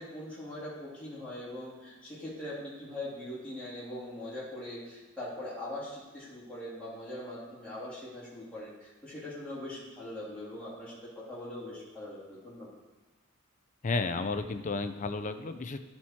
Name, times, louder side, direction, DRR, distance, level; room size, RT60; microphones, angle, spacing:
voice 1, 0.0-12.7, left 1 dB, 5° left, -10 dB, 2.7 m, -41 dB
voice 2, 13.8-15.8, left 3 dB, 35° left, 8 dB, 0.5 m, -32 dB
11.0 x 4.5 x 4.3 m, 1.3 s
head